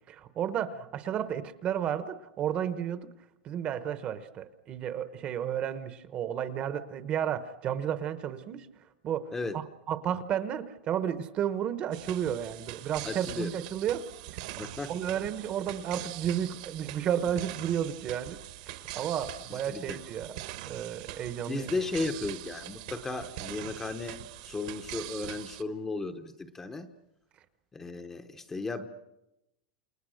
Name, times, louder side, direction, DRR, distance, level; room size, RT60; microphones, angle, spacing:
voice 1, 0.1-3.1 3.4-8.7 9.0-14.1 14.3-14.5 14.9-18.4 19.0-20.4 20.7-21.7, right 9 dB, 25° right, 12 dB, 1.0 m, -32 dB
sound 1, 11.9-25.6, right 15 dB, 50° right, 1.3 m, -43 dB
voice 2, 13.0-13.5 14.6-14.9 19.5-20.0 21.5-26.9 27.7-28.9, left 3 dB, 10° left, 7 dB, 0.9 m, -35 dB
29.0 x 29.0 x 6.4 m, 0.90 s
supercardioid pair, 175°, 5 cm